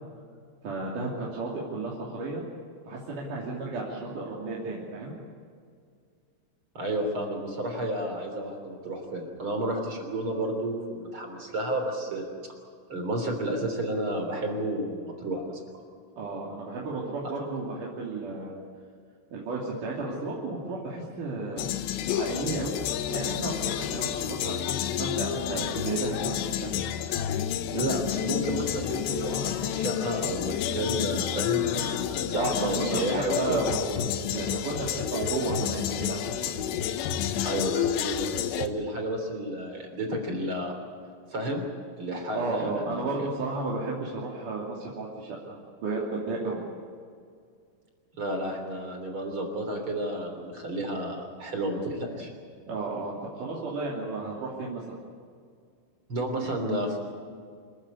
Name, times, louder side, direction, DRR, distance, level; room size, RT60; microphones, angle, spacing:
voice 1, 0.6-2.4 2.9-5.1 16.2-18.6 19.3-21.6 22.1-22.8 23.1-26.8 32.3-36.7 42.3-46.6 52.7-55.0, right 3 dB, 45° right, -5 dB, 3.8 m, -33 dB
voice 2, 6.7-12.3 12.9-15.6 27.7-33.6 37.4-40.7 41.3-41.6 42.0-43.3 48.1-52.3 56.1-57.0, right 1 dB, 30° right, 3 dB, 3.4 m, -31 dB
sound 1, 21.6-38.7, left 10 dB, 75° left, 2.8 m, -30 dB
26.5 x 15.0 x 8.5 m, 2.2 s
omnidirectional pair, 5.9 m